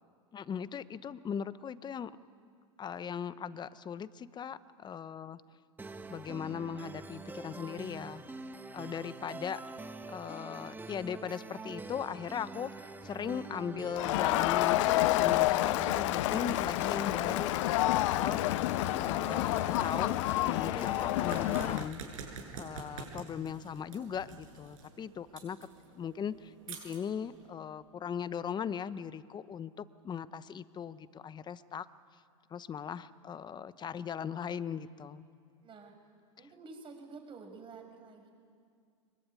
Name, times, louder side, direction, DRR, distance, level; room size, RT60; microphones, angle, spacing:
voice 1, 0.3-2.1 2.8-5.4 6.1-8.2 8.7-9.6 10.1-20.2 20.4-22.0 22.5-25.6 25.9-31.9 32.5-35.3 36.4-36.5, left 7 dB, 25° left, 15 dB, 1.0 m, -39 dB
sound 1, 5.8-21.8, right 3 dB, 10° right, 1.4 m, -45 dB
Crowd, 13.9-21.9, left 18 dB, 65° left, 0.6 m, -29 dB
sound 2, 21.3-27.5, right 5 dB, 80° right, 7.8 m, -47 dB
voice 2, 35.6-35.9 36.4-38.3, right 4 dB, 30° right, 4 dB, 6.3 m, -49 dB
25.0 x 22.5 x 9.9 m, 2.2 s
hypercardioid pair, 105°, 17 cm